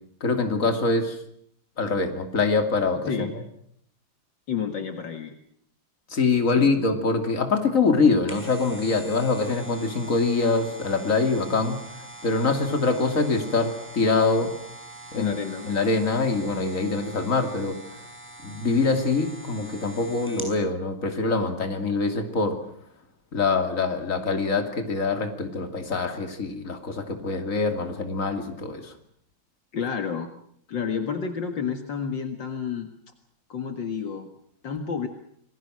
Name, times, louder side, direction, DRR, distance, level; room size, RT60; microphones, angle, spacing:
voice 1, 0.2-1.2 1.8-3.1 6.1-11.8 12.2-14.5 15.1-15.3 15.7-17.8 18.4-22.6 23.3-28.9, left 4 dB, 40° left, 6 dB, 3.0 m, -24 dB
voice 2, 4.5-5.3 6.6-6.8 15.1-15.7 29.7-30.3 30.7-32.9 33.5-34.3 34.6-35.1, left 6 dB, 65° left, 6 dB, 2.4 m, -30 dB
sound 1, 8.0-20.6 21.0-21.1, right 1 dB, 5° right, 6.0 m, -43 dB
28.5 x 21.0 x 6.4 m, 0.67 s
omnidirectional pair, 2.2 m